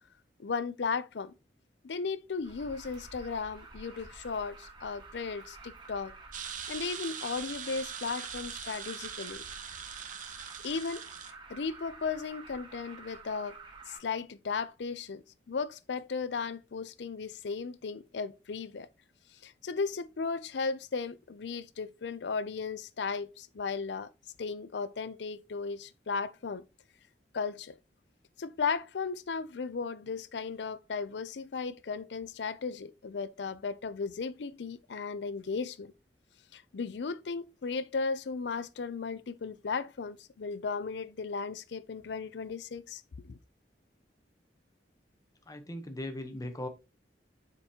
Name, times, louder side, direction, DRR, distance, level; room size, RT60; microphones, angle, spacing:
voice 1, 0.4-1.3 1.8-6.1 6.7-9.4 10.6-11.1 11.5-13.6 13.9-18.9 19.3-24.1 24.4-26.6 27.3-27.8 28.4-35.9 36.5-43.4, left 5 dB, 75° left, 0.5 m, -36 dB
Alarm, 2.4-14.0, right 3 dB, 30° right, 1.7 m, -50 dB
sound 1, 6.3-11.3, right 8 dB, 50° right, 0.8 m, -42 dB
voice 2, 45.5-46.7, left 1 dB, 20° left, 0.9 m, -38 dB
7.0 x 5.2 x 2.9 m
head